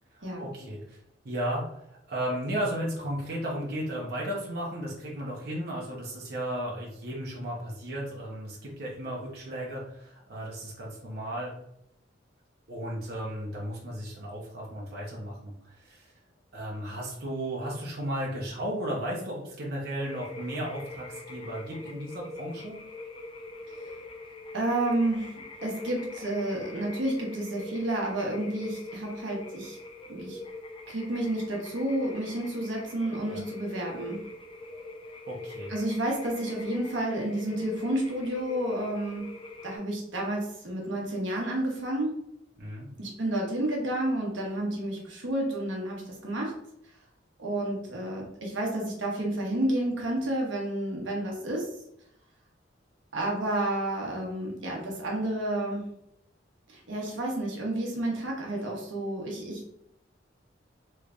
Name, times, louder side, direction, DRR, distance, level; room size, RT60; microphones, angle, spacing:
voice 1, 0.1-1.0 1.2-1.6 2.1-11.5 12.7-16.1 16.5-22.8 33.3-33.4 35.3-35.7 42.6-42.9, right 1 dB, 55° right, -4 dB, 0.9 m, -34 dB
sound 1, 20.0-39.8, left 2 dB, 30° left, 0.5 m, -42 dB
voice 2, 24.5-29.8 30.1-30.4 30.9-34.3 35.7-39.3 39.6-42.2 43.0-46.5 47.4-51.7 53.1-55.9 56.7-59.8, right 1 dB, 80° right, -1 dB, 1.0 m, -30 dB
3.3 x 3.2 x 2.5 m, 0.76 s
head